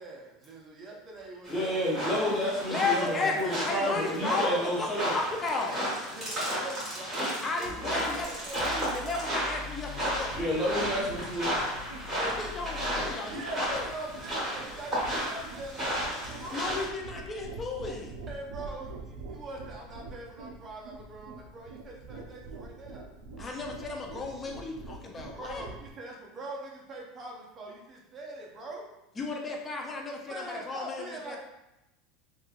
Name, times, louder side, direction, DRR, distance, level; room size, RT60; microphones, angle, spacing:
voice 1, 0.0-1.9 2.2-2.3 2.8-3.4 4.1-4.7 5.7-8.7 10.5-10.9 13.3-16.8 18.3-23.1 25.3-28.9 30.3-31.4, right 2 dB, 30° right, -1 dB, 0.5 m, -42 dB
sound 1, 1.4-16.9, equal, 15° right, 1.3 m, -34 dB
voice 2, 1.5-5.1 10.3-11.5, equal, 5° left, -7 dB, 0.9 m, -30 dB
voice 3, 2.7-5.8 7.4-8.3 8.6-10.3 12.2-13.9 16.5-18.1 23.4-25.7 29.2-31.4, left 3 dB, 20° left, 1 dB, 0.4 m, -34 dB
sound 2, 7.6-10.4 10.7-13.1, left 3 dB, 75° left, 0.5 m, -45 dB
sound 3, 10.1-25.9, right 3 dB, 85° right, 0.3 m, -45 dB
3.0 x 2.3 x 2.3 m, 0.91 s
supercardioid pair, 140°, 0 cm